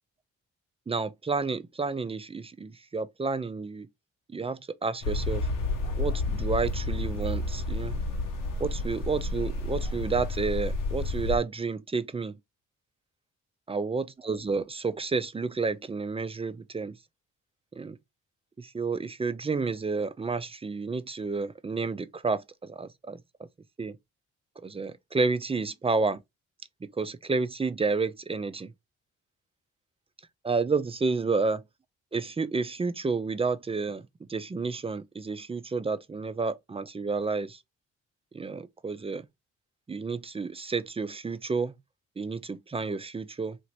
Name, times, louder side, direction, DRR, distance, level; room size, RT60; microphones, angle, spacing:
voice 1, 0.9-3.9 4.3-5.5 6.0-8.0 8.6-12.4 13.7-17.0 17.7-18.0 18.6-23.2 23.8-24.0 24.6-26.2 26.8-28.7 30.4-31.6 32.1-37.6 38.3-39.3 39.9-41.7 42.2-43.6, right 4 dB, 20° right, 0.4 m, -30 dB
sound 1, 5.0-11.4, left 2 dB, 85° left, 0.9 m, -30 dB
2.9 x 2.5 x 3.1 m
cardioid pair, 65°, 31 cm